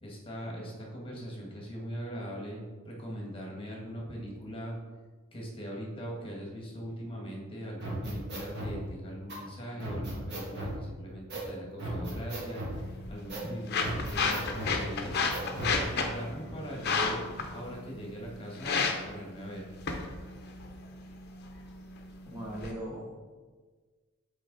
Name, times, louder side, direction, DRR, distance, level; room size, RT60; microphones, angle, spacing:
voice 1, 0.0-4.8 5.3-15.1 15.6-17.2 17.5-19.7, equal, 25° left, -2 dB, 1.5 m, -40 dB
sound 1, 7.8-8.7 9.3-9.4 9.8-10.7 11.3-11.5 11.8-12.8 13.3-13.5 13.8-14.7 15.3-15.8, right 1 dB, 55° right, 2.1 m, -36 dB
sound 2, 12.7-22.7, left 4 dB, 50° left, 0.7 m, -34 dB
voice 2, 22.3-23.3, equal, 10° right, -4 dB, 0.9 m, -39 dB
8.0 x 4.4 x 3.9 m, 1.4 s
head